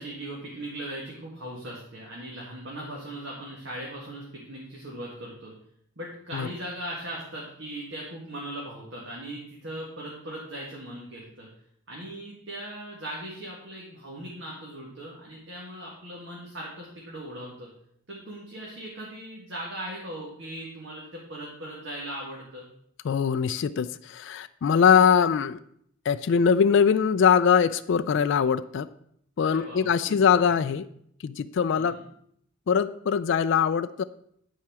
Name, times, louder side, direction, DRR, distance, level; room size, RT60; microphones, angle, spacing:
voice 1, 0.0-5.5 6.0-11.5 11.9-17.7 18.1-22.6 29.4-30.5 31.7-32.0, right 1 dB, 55° right, -4 dB, 1.9 m, -39 dB
voice 2, 23.0-25.6 26.1-28.9 29.4-30.9 31.2-32.0 32.7-34.0, left 7 dB, 55° left, 12 dB, 0.3 m, -22 dB
10.5 x 4.7 x 6.1 m, 0.69 s
head